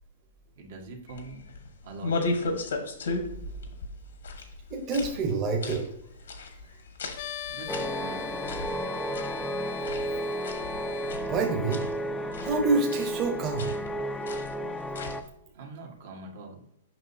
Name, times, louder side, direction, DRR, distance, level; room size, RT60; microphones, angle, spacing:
voice 1, 0.5-1.5 1.8-2.7 7.4-8.4 15.5-16.6, right 3 dB, 65° right, 1 dB, 1.7 m, -44 dB
sound 1, 1.1-15.3, left 3 dB, 85° left, 1.4 m, -37 dB
voice 2, 4.7-5.9 11.3-11.8 12.4-13.7, right 4 dB, 30° right, 0 dB, 1.1 m, -27 dB
sound 2, 7.1-11.2, left 11 dB, 50° left, 0.6 m, -40 dB
sound 3, 7.7-15.2, right 1 dB, 5° left, 0.4 m, -32 dB
7.8 x 5.5 x 2.8 m, 0.78 s
hypercardioid pair, 135°, 0 cm